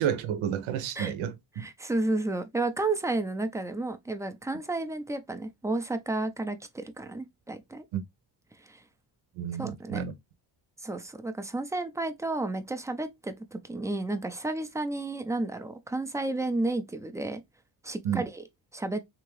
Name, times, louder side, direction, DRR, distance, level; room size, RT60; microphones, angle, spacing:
voice 1, 0.0-1.6 7.9-8.0 9.4-10.1 18.0-18.3, right 9 dB, 80° right, 0.8 m, -30 dB
voice 2, 1.6-7.8 8.6-8.8 9.6-10.0 10.8-17.4 17.8-18.4 18.7-19.0, right 2 dB, 5° right, 0.4 m, -32 dB
3.5 x 2.9 x 3.0 m
cardioid pair, 110°, 48 cm